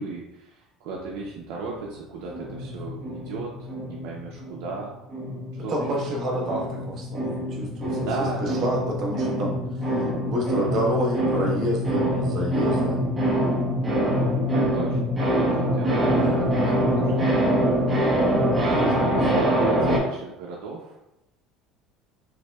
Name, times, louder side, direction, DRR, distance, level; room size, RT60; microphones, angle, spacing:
voice 1, 0.0-4.9 5.6-5.8 6.3-6.6 8.0-8.9 12.1-12.6 14.5-17.4 17.7-17.8 18.9-21.0, right 4 dB, 80° right, -2 dB, 0.5 m, -36 dB
sound 1, 2.3-4.9 5.1-20.0, equal, 15° right, 0.7 m, -24 dB
voice 2, 5.5-9.5 10.3-13.0 16.1-16.4 18.7-19.0, right 1 dB, 45° right, -1 dB, 0.9 m, -29 dB
5.7 x 2.1 x 2.2 m, 0.89 s
cardioid pair, 135°, 0 cm